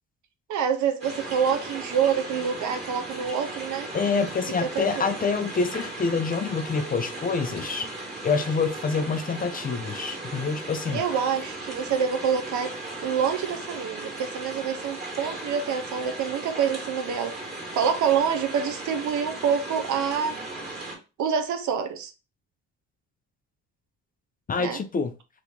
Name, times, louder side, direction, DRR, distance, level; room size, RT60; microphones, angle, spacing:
voice 1, 0.5-3.9 4.7-5.0 10.9-12.7 13.0-17.3 17.7-20.4 21.2-22.1 24.6-24.8, right 7 dB, 75° right, 0.7 m, -26 dB
sound 1, 1.0-21.0, right 2 dB, 20° right, 1.7 m, -37 dB
voice 2, 3.9-7.9 8.2-11.0 24.5-25.1, left 4 dB, 30° left, 0.4 m, -26 dB
2.8 x 2.5 x 3.5 m
cardioid pair, 90°, 30 cm